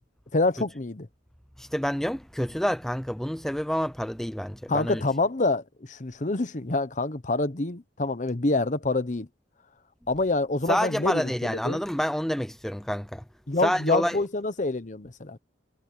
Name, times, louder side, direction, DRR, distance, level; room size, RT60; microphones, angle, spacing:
voice 1, 0.3-1.1 4.7-5.6 5.9-9.3 10.1-11.8 13.5-15.4, left 2 dB, 45° left, 1.0 m, -26 dB
voice 2, 1.6-5.0 10.7-13.2 13.6-14.2, equal, ahead, 0.5 m, -28 dB
head